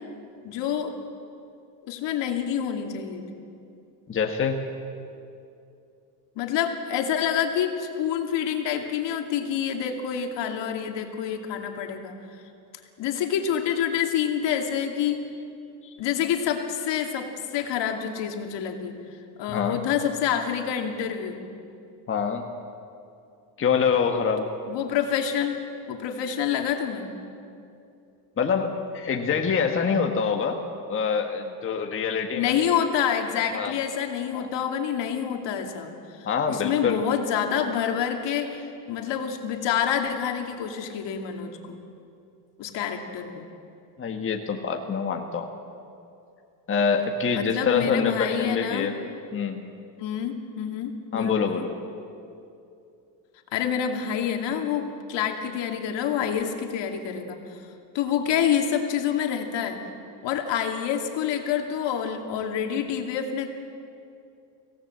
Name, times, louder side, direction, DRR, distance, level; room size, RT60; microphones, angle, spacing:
voice 1, 0.4-0.9 1.9-3.3 6.4-12.2 13.0-15.2 16.0-19.0 19.4-21.4 24.7-25.6 25.9-27.1 32.3-41.8 42.6-43.4 47.3-48.9 50.0-51.6 53.5-57.6 57.9-59.8 60.2-63.5, left 8 dB, 60° left, 4 dB, 2.5 m, -27 dB
voice 2, 4.1-4.7 15.8-15.9 19.5-19.8 22.1-22.4 23.6-24.5 28.4-30.6 30.9-32.5 33.5-33.7 34.3-34.5 36.2-37.0 44.0-45.5 46.7-48.9 49.3-49.7 51.1-51.7, left 6 dB, 25° left, 3 dB, 1.4 m, -25 dB
25.0 x 17.0 x 7.8 m, 2.6 s
cardioid pair, 135°, 48 cm